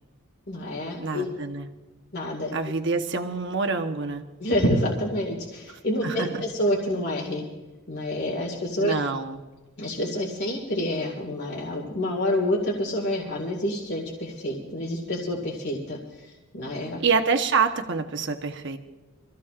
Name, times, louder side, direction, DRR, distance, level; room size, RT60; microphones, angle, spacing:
voice 1, 0.5-1.3 2.1-2.5 4.4-7.4 7.9-8.9 9.8-17.0, left 1 dB, 50° left, -1 dB, 2.0 m, -28 dB
voice 2, 1.0-1.7 2.5-4.2 6.0-6.4 8.8-9.4 17.0-18.8, right 5 dB, 55° right, 6 dB, 1.1 m, -26 dB
25.5 x 14.5 x 2.5 m, 1.1 s
head